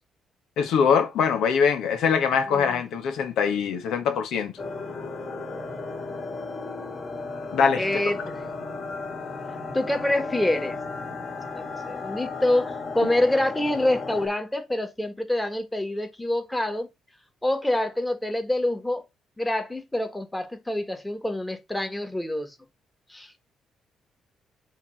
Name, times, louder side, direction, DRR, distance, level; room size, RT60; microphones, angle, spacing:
voice 1, 0.6-4.5 7.5-7.8, left 6 dB, 80° left, 1.3 m, -23 dB
voice 2, 2.5-2.8 7.8-8.4 9.7-10.8 11.5-16.9 17.4-19.0 19.4-22.5 23.1-23.3, left 1 dB, 10° left, 1.5 m, -26 dB
sound 1, 4.6-14.3, left 3 dB, 40° left, 2.4 m, -34 dB
7.1 x 3.0 x 5.7 m
cardioid pair, 90°, 0 cm